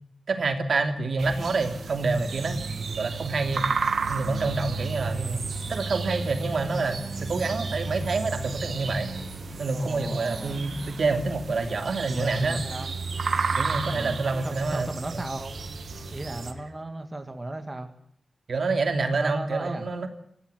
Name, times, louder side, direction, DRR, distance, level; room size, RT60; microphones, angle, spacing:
voice 1, 0.3-3.7 4.1-9.1 9.6-12.6 13.5-15.2 18.5-20.1, right 3 dB, 70° right, 6 dB, 2.9 m, -27 dB
sound 1, 1.2-16.5, right 4 dB, 90° right, 2.1 m, -33 dB
sound 2, 1.3-14.9, right 2 dB, 45° right, 7.4 m, -47 dB
sound 3, 4.0-16.7, left 2 dB, 80° left, 4.9 m, -47 dB
voice 2, 5.4-5.7 9.7-10.6 12.0-12.9 13.9-15.5 16.1-17.9 19.1-19.9, right 2 dB, 25° right, 6 dB, 2.4 m, -35 dB
25.5 x 15.5 x 8.1 m, 0.71 s
wide cardioid pair, 130°, 0 cm